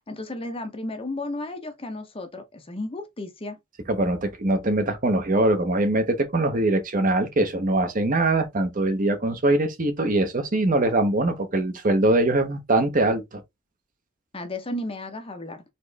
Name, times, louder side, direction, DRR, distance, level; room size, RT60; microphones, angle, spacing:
voice 1, 0.1-3.6 14.3-15.6, left 1 dB, 25° left, 0.7 m, -33 dB
voice 2, 3.9-13.4, right 2 dB, 35° right, 0.8 m, -22 dB
4.3 x 3.0 x 3.3 m
head